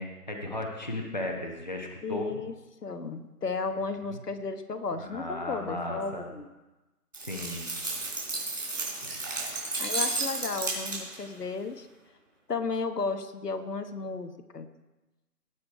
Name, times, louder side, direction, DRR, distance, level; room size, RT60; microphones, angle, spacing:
voice 1, 0.0-2.4 4.1-4.2 5.0-6.2 7.2-7.7 9.0-9.2, left 1 dB, 30° left, 1 dB, 1.1 m, -35 dB
voice 2, 2.0-2.5 2.8-6.5 9.8-11.9 12.5-14.7, left 4 dB, 80° left, 8 dB, 1.2 m, -34 dB
sound 1, 7.1-11.3, right 3 dB, 55° right, 3.8 m, -33 dB
18.5 x 6.2 x 4.7 m, 1.1 s
figure-of-eight pair, 180°, 46 cm